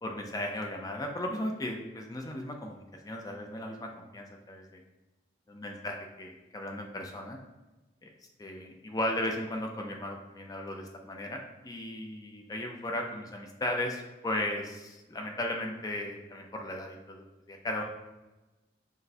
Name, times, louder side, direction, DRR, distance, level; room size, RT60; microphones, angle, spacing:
voice 1, 0.0-4.8 5.5-7.4 8.0-8.1 8.4-17.8, left 1 dB, 20° left, 2 dB, 0.4 m, -36 dB
6.0 x 2.1 x 2.7 m, 1.1 s
head